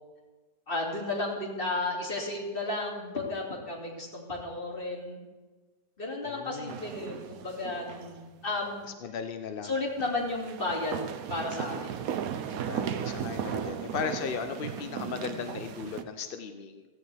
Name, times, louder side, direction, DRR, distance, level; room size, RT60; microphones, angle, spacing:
voice 1, 0.7-5.2 6.0-8.9 9.6-11.0 11.3-12.1, left 2 dB, 35° left, -1 dB, 2.6 m, -33 dB
voice 2, 6.2-6.8 9.0-9.7 12.6-16.9, left 6 dB, 55° left, 7 dB, 0.6 m, -36 dB
sound 1, 6.7-8.2 8.5-8.6 10.0-16.0, right 8 dB, 65° right, 1.1 m, -36 dB
16.0 x 15.5 x 3.4 m, 1.3 s
omnidirectional pair, 1.7 m